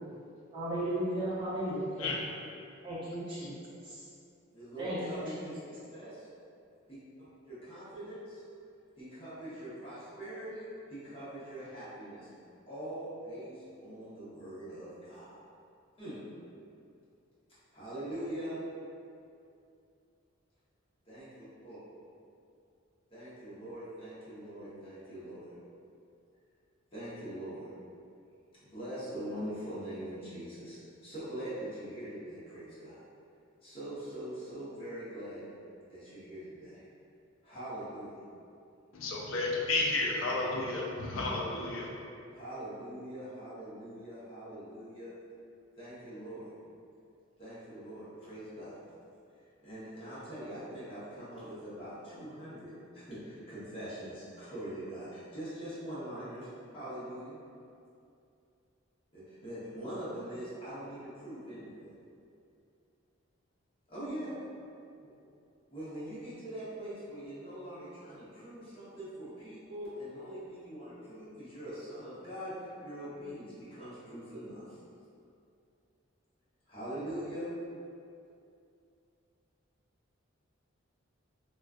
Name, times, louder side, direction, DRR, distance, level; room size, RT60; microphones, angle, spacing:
voice 1, 0.5-2.1 2.8-3.5 3.9-4.0 4.8-5.2, right 1 dB, 25° right, -11 dB, 0.7 m, -34 dB
voice 2, 4.5-6.3 6.9-7.0 7.5-8.4 9.0-12.3 12.7-15.4 16.0-16.2 17.7-18.6 21.1-21.8 23.1-25.4 26.9-27.7 28.6-33.0 33.6-35.4 35.9-36.8 37.4-38.1 42.3-45.1 45.8-46.4 47.4-48.8 49.6-57.4 59.1-61.9 63.9-64.4 65.0-65.1 65.7-74.8 76.7-77.5, right 1 dB, 30° left, -12 dB, 0.8 m, -43 dB
voice 3, 38.9-41.9, left 2 dB, 70° left, -2 dB, 0.4 m, -32 dB
2.3 x 2.2 x 2.4 m, 2.5 s
head